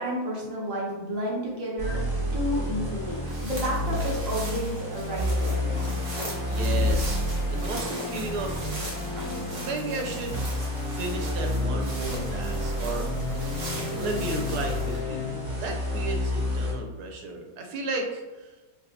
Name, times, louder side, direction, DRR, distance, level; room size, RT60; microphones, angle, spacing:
voice 1, 0.0-2.0 2.3-6.0, equal, 60° right, -3 dB, 1.2 m, -31 dB
sound 1, 1.8-16.7, left 1 dB, 20° right, 1.3 m, -30 dB
sound 2, 3.1-15.0, right 1 dB, 35° right, 0.8 m, -40 dB
sound 3, 4.9-16.1, left 5 dB, 65° left, 0.8 m, -38 dB
voice 2, 6.4-7.2 7.5-8.7 9.1-10.4 10.9-13.1 13.9-18.5, right 3 dB, 90° right, 2 dB, 1.2 m, -34 dB
4.9 x 2.3 x 2.7 m, 1.2 s
omnidirectional pair, 1.7 m